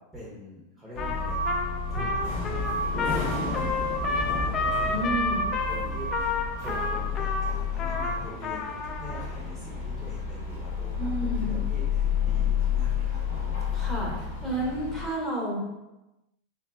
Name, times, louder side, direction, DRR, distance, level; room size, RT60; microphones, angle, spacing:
voice 1, 0.1-6.4 6.6-13.2, equal, 5° right, -9 dB, 0.8 m, -42 dB
sound 1, 0.9-15.1, left 4 dB, 65° left, 0.8 m, -30 dB
Trumpet, 1.0-9.2, left 5 dB, 35° left, 0.3 m, -31 dB
voice 2, 4.9-5.4 11.0-11.5 13.7-14.1 14.4-15.6, right 1 dB, 15° left, -6 dB, 1.3 m, -30 dB
3.2 x 2.3 x 2.3 m, 0.99 s
figure-of-eight pair, 90°, 0 cm